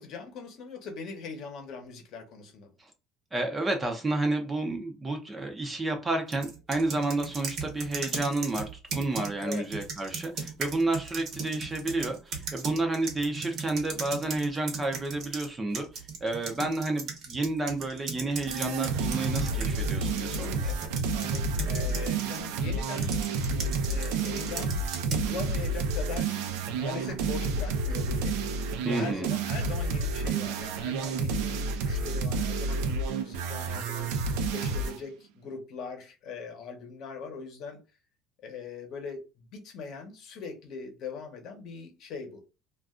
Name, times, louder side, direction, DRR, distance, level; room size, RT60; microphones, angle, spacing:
voice 1, 0.0-2.7 9.4-9.6 20.6-23.2 23.8-26.4 26.7-37.8 38.4-42.4, left 5 dB, 50° left, 0.9 m, -41 dB
voice 2, 3.3-20.7 28.8-29.3, right 2 dB, 15° right, 0.5 m, -30 dB
sound 1, 6.3-15.5 15.7-22.4 23.0-25.3, right 5 dB, 50° right, 0.9 m, -37 dB
sound 2, 18.5-35.0, right 3 dB, 85° right, 0.5 m, -30 dB
2.4 x 2.2 x 3.6 m
cardioid pair, 150°, 0 cm